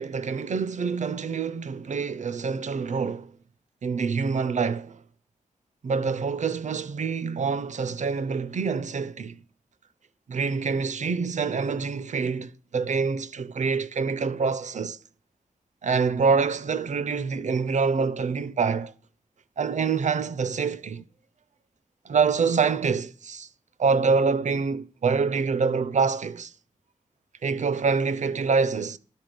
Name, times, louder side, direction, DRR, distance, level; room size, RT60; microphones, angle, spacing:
voice 1, 0.0-3.3 3.8-5.0 5.8-9.4 10.3-15.0 15.8-18.9 19.6-21.0 22.1-23.5 23.8-26.5 27.4-29.0, right 5 dB, 60° right, 0.5 m, -26 dB
11.5 x 5.6 x 5.2 m
wide cardioid pair, 75°, 14 cm